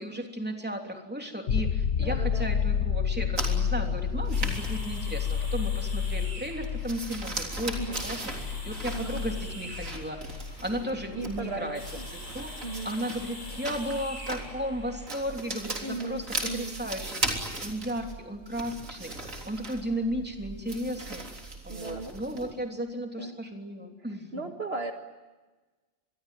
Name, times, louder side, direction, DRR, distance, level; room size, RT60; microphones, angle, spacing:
voice 1, 0.0-10.2 10.6-11.8 12.3-12.5 12.8-21.2 21.6-24.4, equal, 5° right, 3 dB, 3.2 m, -35 dB
sound 1, 1.5-15.0 17.7-17.8, left 7 dB, 60° left, 1.3 m, -31 dB
voice 2, 2.0-2.5 7.8-8.0 8.9-9.2 11.1-12.1 12.6-12.9 15.8-16.8 21.7-22.5 23.2-23.4 24.3-24.9, right 3 dB, 50° right, 4 dB, 1.9 m, -37 dB
sound 2, 3.4-22.5, right 2 dB, 90° right, 4.0 m, -38 dB
sound 3, 4.3-15.1, left 1 dB, 35° left, 7.1 m, -45 dB
26.5 x 22.0 x 9.3 m, 1.2 s
omnidirectional pair, 1.3 m